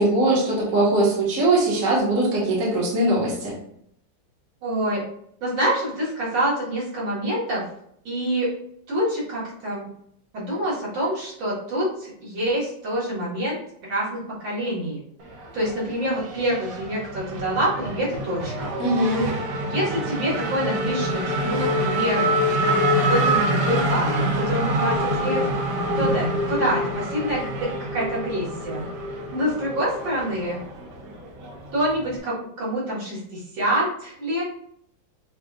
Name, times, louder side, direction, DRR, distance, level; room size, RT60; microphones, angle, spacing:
voice 1, 0.0-3.5 18.8-19.3, right 2 dB, 50° right, -5 dB, 1.5 m, -21 dB
voice 2, 4.6-5.0 5.4-7.6 8.0-8.5 8.9-9.9 10.3-13.6 13.9-15.0 15.5-18.7 19.7-22.4 22.7-25.4 26.0-30.6 31.7-34.4, right 1 dB, 90° right, -8 dB, 2.5 m, -26 dB
Race car auto racing / Accelerating revving vroom, 15.2-32.2, equal, 65° right, 1.2 m, -26 dB
6.3 x 2.4 x 2.4 m, 0.70 s
omnidirectional pair, 2.1 m